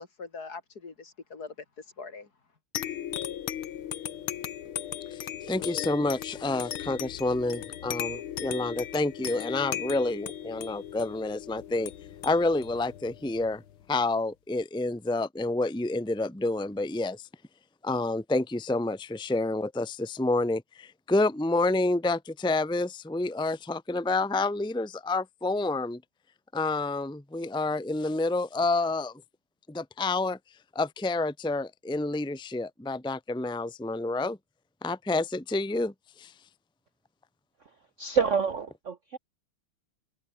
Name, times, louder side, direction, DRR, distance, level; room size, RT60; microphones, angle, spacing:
voice 1, 0.0-2.3, left 4 dB, 50° left, 3.0 m, -42 dB
sound 1, 2.7-13.8, left 10 dB, 85° left, 2.1 m, -37 dB
voice 2, 5.1-11.9 12.2-13.6 13.9-17.3 17.8-26.0 26.5-29.1 29.7-30.4 30.7-34.4 34.8-35.9 36.2-36.3, left 2 dB, 5° left, 1.2 m, -29 dB
voice 3, 38.0-39.2, right 6 dB, 45° right, 1.0 m, -27 dB
omnidirectional pair, 2.3 m